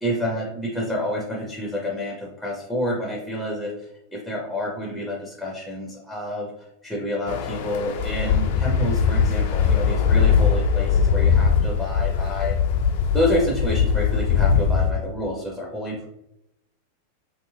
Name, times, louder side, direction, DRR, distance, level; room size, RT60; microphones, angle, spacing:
voice 1, 0.0-3.7 4.1-6.5 6.8-12.6 13.1-16.0, equal, ahead, -2 dB, 0.6 m, -28 dB
sound 1, 7.3-14.9, left 6 dB, 50° left, 0.3 m, -21 dB
2.9 x 2.8 x 2.3 m, 0.84 s
figure-of-eight pair, 90°, 0 cm